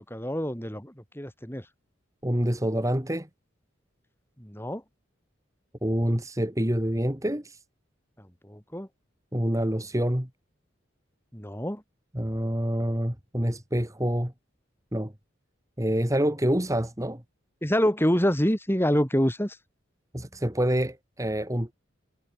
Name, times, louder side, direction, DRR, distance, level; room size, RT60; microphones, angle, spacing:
voice 1, 0.1-1.6 4.4-4.8 8.2-8.9 11.3-11.8 17.6-19.6, equal, 10° left, 5.6 m, -26 dB
voice 2, 2.2-3.3 5.8-7.6 9.3-10.3 12.1-14.3 14.9-15.1 15.8-17.2 20.1-21.7, equal, 15° right, 2.6 m, -27 dB
head